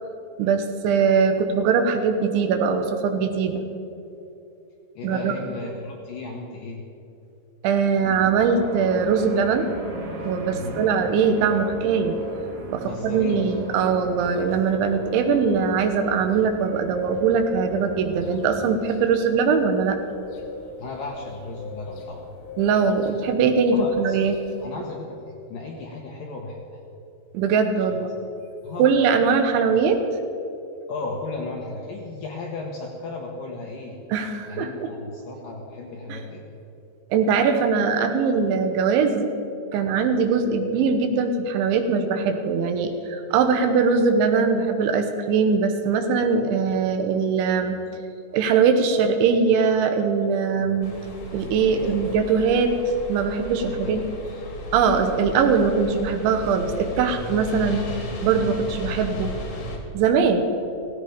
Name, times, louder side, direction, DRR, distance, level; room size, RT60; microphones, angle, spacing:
voice 1, 0.4-3.6 5.0-5.3 7.6-9.7 10.2-12.2 12.7-20.0 22.6-24.4 27.3-28.2 28.8-30.0 34.1-34.9 36.1-36.2 37.1-39.3 39.7-47.8 48.3-51.0 51.3-52.7 53.1-54.0 54.7-57.9 58.2-59.3 59.9-60.4, right 5 dB, 75° right, 6 dB, 3.3 m, -21 dB
voice 2, 5.0-6.9 10.5-10.9 12.8-14.0 20.8-22.3 23.7-24.3 24.6-26.8 27.9-28.0 28.6-29.0 30.9-34.0 34.4-36.5 50.5-50.7 51.7-52.0 53.6-54.5, left 3 dB, 70° left, 0 dB, 2.2 m, -35 dB
sound 1, 8.0-18.7, right 2 dB, 55° right, 3.5 m, -38 dB
sound 2, 9.4-24.7, left 4 dB, 90° left, 4.3 m, -43 dB
sound 3, 50.8-59.8, left 1 dB, 45° left, 2.2 m, -35 dB
16.5 x 16.5 x 5.1 m, 2.7 s
omnidirectional pair, 5.6 m